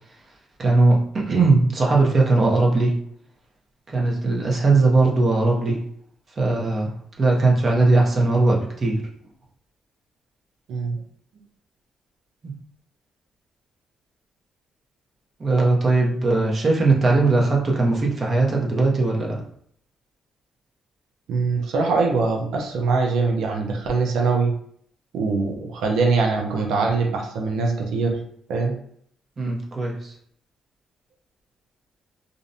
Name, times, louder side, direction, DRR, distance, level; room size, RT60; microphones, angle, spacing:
voice 1, 0.6-2.9 3.9-5.8 6.4-6.9 7.2-9.0 12.4-12.5 15.4-19.4 29.4-30.1, right 3 dB, 40° right, -1 dB, 0.7 m, -19 dB
voice 2, 21.3-24.5 25.1-28.2 28.5-28.7, right 4 dB, 80° right, 0 dB, 0.5 m, -22 dB
2.5 x 2.1 x 2.6 m, 0.65 s
cardioid pair, 90°, 0 cm